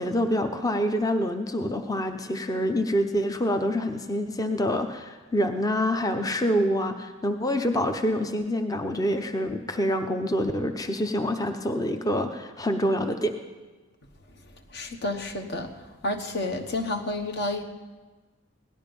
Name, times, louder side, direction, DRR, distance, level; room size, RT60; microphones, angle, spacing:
voice 1, 0.0-13.3, equal, 15° left, 6 dB, 0.7 m, -26 dB
voice 2, 14.7-15.7 16.0-17.6, left 2 dB, 50° left, 5 dB, 1.2 m, -30 dB
17.5 x 12.0 x 5.3 m, 1.3 s
head